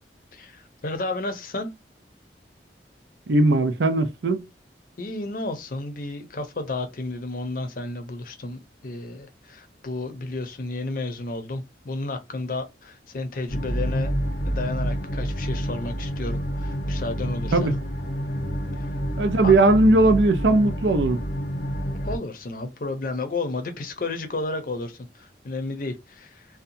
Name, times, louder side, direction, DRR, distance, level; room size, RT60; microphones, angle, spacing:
voice 1, 0.3-1.7 5.0-14.1 14.5-17.7 18.8-18.9 19.4-19.5 22.1-26.5, left 2 dB, 50° left, 0.6 m, -32 dB
voice 2, 3.3-4.5 17.5-17.8 19.2-21.2, right 2 dB, 80° right, 0.5 m, -19 dB
sound 1, 13.5-22.2, equal, 90° left, 0.7 m, -28 dB
2.7 x 2.2 x 2.6 m
head